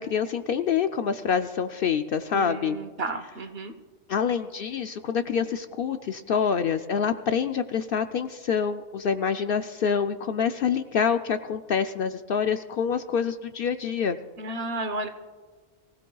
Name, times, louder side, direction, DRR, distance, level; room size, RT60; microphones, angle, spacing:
voice 1, 0.0-2.8 4.1-14.2, left 7 dB, 60° left, 8 dB, 0.6 m, -26 dB
voice 2, 2.3-3.7 14.4-15.1, right 2 dB, 60° right, 9 dB, 1.1 m, -32 dB
24.0 x 16.5 x 2.3 m, 1.5 s
omnidirectional pair, 1.2 m